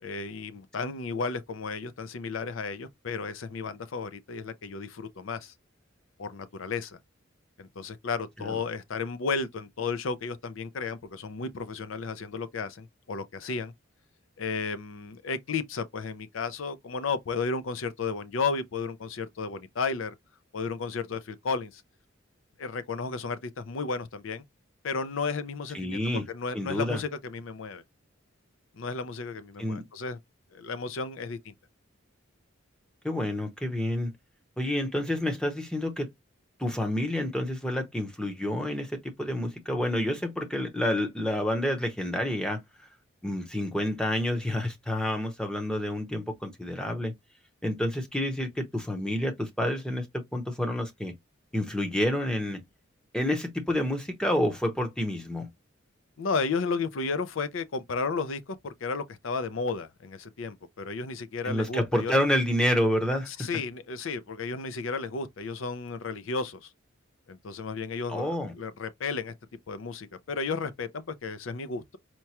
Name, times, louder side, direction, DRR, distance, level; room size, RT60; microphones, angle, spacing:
voice 1, 0.0-5.5 6.2-7.0 7.6-13.7 14.4-20.1 20.5-21.8 22.6-24.4 24.8-27.8 28.8-30.2 30.5-31.5 56.2-62.1 63.4-66.7 67.3-69.3 69.7-72.0, left 4 dB, 75° left, 0.5 m, -33 dB
voice 2, 25.7-26.2 26.5-27.0 29.6-29.9 33.0-34.1 34.6-36.1 36.6-42.6 43.2-47.1 47.6-51.1 51.5-52.6 53.1-55.5 61.4-63.5 68.1-68.5, left 1 dB, 5° left, 0.7 m, -29 dB
4.4 x 2.2 x 2.8 m
head